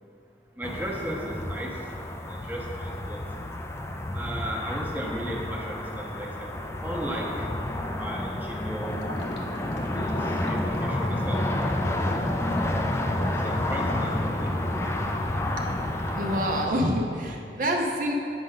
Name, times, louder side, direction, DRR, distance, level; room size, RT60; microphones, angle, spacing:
sound 1, 0.6-16.7, left 1 dB, 15° left, 0.3 m, -30 dB
voice 1, 0.6-1.8 2.2-3.2 4.1-6.5 6.8-7.5 7.9-9.2 9.8-12.5 13.4-14.6, equal, 10° right, -2 dB, 0.7 m, -35 dB
Gurgling / Liquid, 8.8-16.6, left 1 dB, 85° left, 0.9 m, -42 dB
voice 2, 16.1-18.1, equal, 50° right, 1 dB, 0.5 m, -27 dB
8.8 x 5.3 x 3.8 m, 2.6 s
head